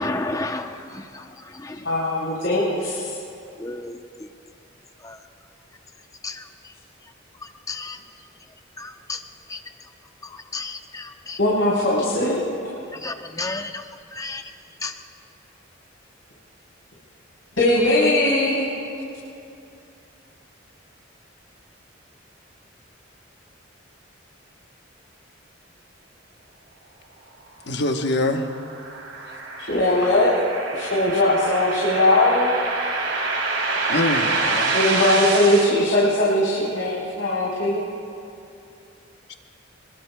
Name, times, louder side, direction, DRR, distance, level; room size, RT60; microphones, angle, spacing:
voice 1, 0.0-1.9 3.6-4.3 5.0-5.2 6.2-6.7 7.4-8.0 8.8-9.2 9.5-9.6 10.2-11.4 12.9-14.5 14.8-14.9, left 3 dB, 15° left, 6 dB, 0.7 m, -33 dB
voice 2, 1.8-3.1 11.4-12.4 17.6-18.7 29.7-30.3 30.7-32.5 34.7-37.8, left 1 dB, 85° left, -8 dB, 4.0 m, -20 dB
voice 3, 27.6-28.5 33.9-34.8 39.3-39.4, left 2 dB, 60° left, 5 dB, 1.1 m, -24 dB
sound 1, 27.9-35.7, right 3 dB, 70° right, 2.3 m, -26 dB
26.0 x 22.0 x 2.2 m, 2.6 s
head